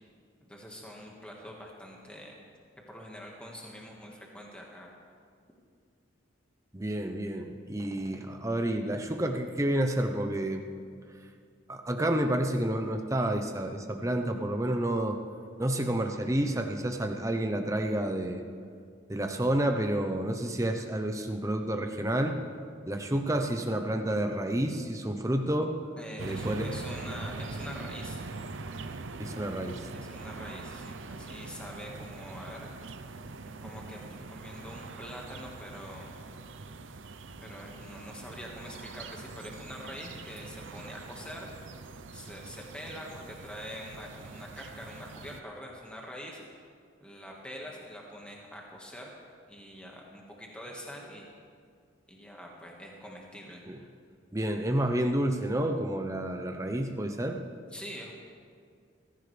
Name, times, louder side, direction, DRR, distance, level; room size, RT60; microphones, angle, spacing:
voice 1, 0.4-2.3 2.9-4.9 26.0-28.2 29.9-32.7 33.0-33.1 33.4-36.1 37.4-41.5 42.1-46.4 47.0-49.1 49.5-51.3 52.1-53.6 57.7-58.1, equal, 5° left, -2 dB, 1.7 m, -44 dB
voice 2, 6.7-10.6 11.7-15.2 15.6-18.4 19.1-22.4 22.9-25.7 26.2-26.7 29.2-29.8 53.7-53.8 54.3-57.4, right 1 dB, 15° right, 4 dB, 0.9 m, -29 dB
sound 1, 26.2-45.4, right 3 dB, 75° right, 0.7 m, -43 dB
21.5 x 15.0 x 3.4 m, 2.2 s
head